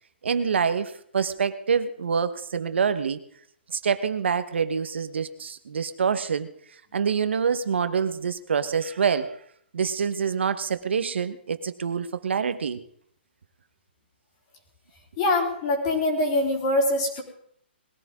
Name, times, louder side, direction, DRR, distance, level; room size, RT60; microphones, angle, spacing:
voice 1, 0.2-3.2 3.7-6.5 6.9-9.4 9.7-12.8, right 6 dB, 80° right, 11 dB, 1.2 m, -26 dB
voice 2, 15.2-17.2, left 2 dB, 30° left, 2 dB, 3.4 m, -23 dB
20.5 x 14.0 x 3.7 m, 0.66 s
hypercardioid pair, 170°, 6 cm